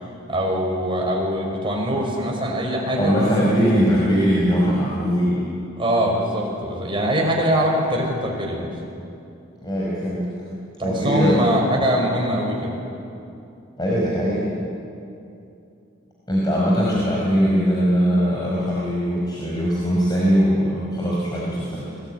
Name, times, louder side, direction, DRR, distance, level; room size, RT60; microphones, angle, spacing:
voice 1, 0.3-3.5 5.8-8.7 10.8-12.8, equal, 25° right, -1 dB, 5.5 m, -23 dB
voice 2, 3.0-5.4 9.6-10.3 10.8-11.4 11.7-11.8 13.8-14.4 16.3-21.9, equal, 20° left, -6 dB, 4.9 m, -20 dB
28.0 x 20.5 x 9.5 m, 2.7 s
head